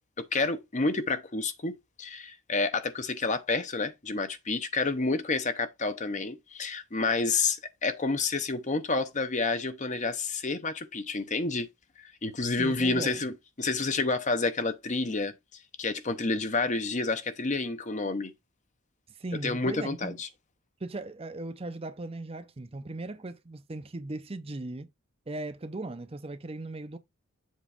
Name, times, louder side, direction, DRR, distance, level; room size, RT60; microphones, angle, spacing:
voice 1, 0.2-11.7 12.2-15.3 15.8-18.3 19.4-20.3, left 3 dB, 35° left, 0.8 m, -29 dB
voice 2, 12.6-13.2 19.2-20.2 20.8-24.9 25.3-27.0, right 2 dB, 30° right, 0.6 m, -38 dB
7.4 x 3.1 x 4.9 m
head